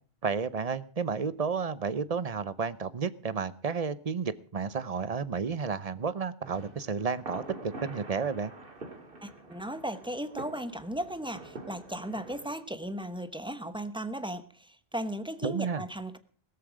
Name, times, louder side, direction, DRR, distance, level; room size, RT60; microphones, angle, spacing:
voice 1, 0.2-8.5 15.4-15.8, right 5 dB, 40° right, 16 dB, 0.8 m, -32 dB
sound 1, 6.4-12.5, right 2 dB, 55° right, 2.4 m, -45 dB
voice 2, 9.2-16.2, right 1 dB, 5° right, 11 dB, 0.9 m, -36 dB
17.0 x 13.5 x 5.0 m, 0.43 s
omnidirectional pair, 1.1 m